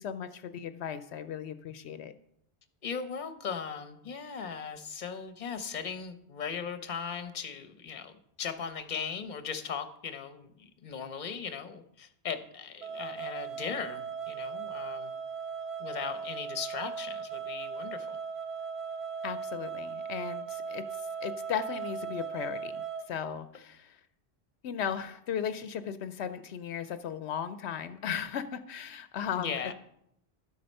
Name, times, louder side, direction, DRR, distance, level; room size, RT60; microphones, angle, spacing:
voice 1, 0.0-2.1 19.2-24.0 24.6-29.7, left 8 dB, 80° left, 11 dB, 0.9 m, -36 dB
voice 2, 2.8-8.1 8.4-15.1 15.8-18.2 29.4-29.7, left 6 dB, 45° left, 10 dB, 0.9 m, -38 dB
sound 1, 12.8-23.1, right 6 dB, 75° right, 1.0 m, -38 dB
12.0 x 7.7 x 5.3 m, 0.76 s
omnidirectional pair, 1.1 m